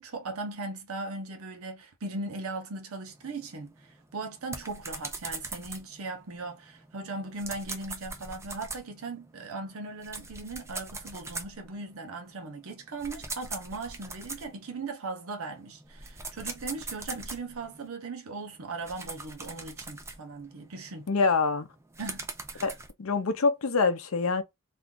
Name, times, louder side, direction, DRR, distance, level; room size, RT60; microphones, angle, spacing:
voice 1, 0.0-21.1 22.0-22.7, right 3 dB, 70° right, 0.7 m, -38 dB
sound 1, 3.1-14.8 15.4-17.9 18.4-22.9, right 3 dB, 15° right, 0.5 m, -42 dB
voice 2, 21.1-21.7 22.6-24.4, left 4 dB, 70° left, 0.6 m, -25 dB
2.5 x 2.3 x 3.6 m
head